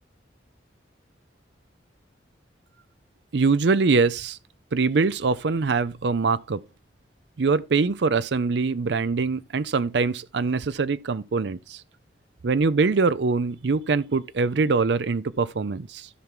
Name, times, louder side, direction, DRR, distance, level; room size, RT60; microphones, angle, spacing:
voice 1, 3.3-4.4 4.7-6.6 7.4-11.8 12.4-16.1, right 4 dB, 65° right, 0.5 m, -23 dB
12.5 x 5.9 x 3.7 m
head